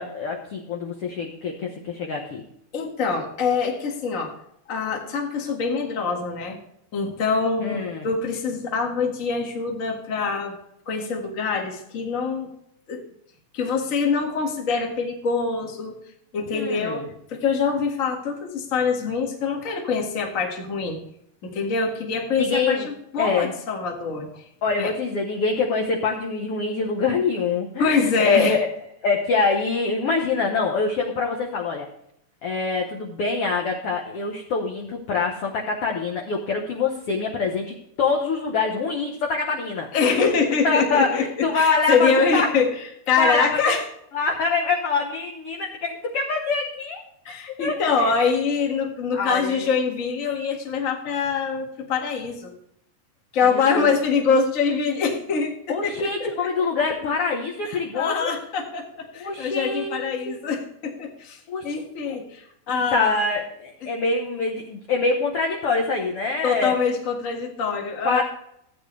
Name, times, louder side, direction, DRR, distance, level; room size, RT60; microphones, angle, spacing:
voice 1, 0.0-2.4 7.6-8.1 16.5-17.1 22.4-22.9 23.2-23.5 24.6-28.6 29.0-31.9 32.4-39.9 40.6-42.5 43.2-43.8 44.1-47.0 47.3-48.1 49.1-49.7 53.5-53.9 55.7-58.3 59.2-60.4 61.5-61.7 62.1-62.2 62.7-66.7 68.0-68.2, left 4 dB, 60° left, 0 dB, 1.6 m, -25 dB
voice 2, 2.7-4.3 4.7-6.6 6.9-10.6 10.8-12.5 12.9-13.0 13.5-15.9 16.3-17.0 17.3-21.0 21.4-24.3 24.8-24.9 27.8-28.6 39.9-41.2 41.5-42.7 43.1-43.8 47.2-52.5 53.3-56.7 57.7-63.2 66.4-68.2, left 5 dB, 35° left, 1 dB, 1.4 m, -24 dB
14.5 x 9.0 x 3.3 m, 0.74 s
omnidirectional pair, 4.1 m